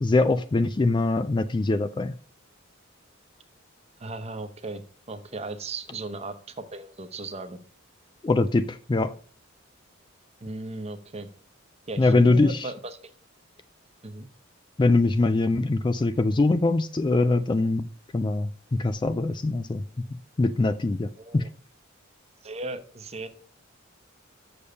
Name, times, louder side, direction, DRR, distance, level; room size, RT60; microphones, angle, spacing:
voice 1, 0.0-2.1 8.2-9.1 12.0-12.7 14.8-17.9 18.1-19.8 20.4-21.1 21.3-21.4, left 2 dB, 20° left, 12 dB, 0.3 m, -23 dB
voice 2, 4.0-7.6 10.4-11.3 11.9-13.0 14.0-14.3 21.2-21.5 22.4-23.3, right 2 dB, 30° right, 9 dB, 0.8 m, -36 dB
6.9 x 6.8 x 5.2 m, 0.42 s
head